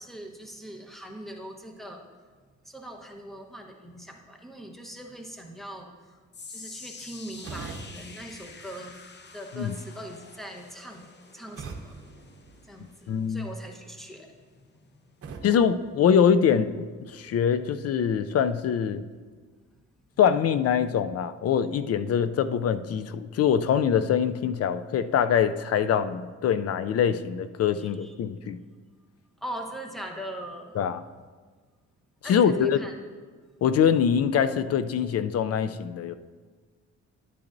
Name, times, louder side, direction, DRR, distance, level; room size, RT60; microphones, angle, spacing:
voice 1, 0.0-2.0 2.7-6.2 6.5-8.9 9.3-12.0 12.7-14.3 27.8-28.1 29.4-30.8 32.2-32.9, equal, ahead, 2 dB, 1.1 m, -41 dB
sound 1, 6.3-18.7 19.0-19.3 20.0-20.1, left 4 dB, 35° left, 0.8 m, -49 dB
sound 2, 7.4-9.4 11.6-13.3 15.2-16.8, right 4 dB, 50° right, 0.9 m, -44 dB
voice 2, 13.1-13.5 15.4-19.0 20.2-28.6 30.8-31.0 32.3-32.8 33.6-36.2, left 8 dB, 55° left, 12 dB, 0.5 m, -24 dB
11.5 x 8.7 x 2.6 m, 1.5 s
cardioid pair, 90°, 30 cm